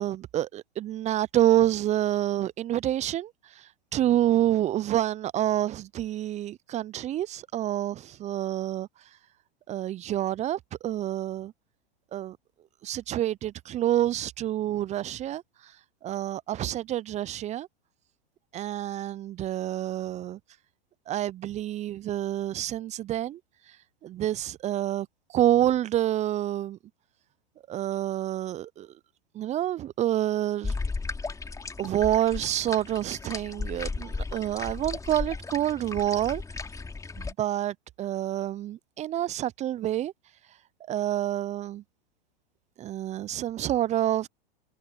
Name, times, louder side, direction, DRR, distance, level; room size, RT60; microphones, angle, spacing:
voice 1, 0.0-8.9 9.7-11.5 12.1-12.4 12.8-15.7 16.0-17.7 18.5-20.4 21.1-23.4 24.0-26.8 27.7-28.9 29.3-30.7 31.8-36.4 37.2-40.1 40.9-41.8 42.8-44.3, right 12 dB, 25° right, 0.6 m, -28 dB
sound 1, 30.6-37.3, left 3 dB, 10° left, 2.9 m, -35 dB
hypercardioid pair, 105°, 30 cm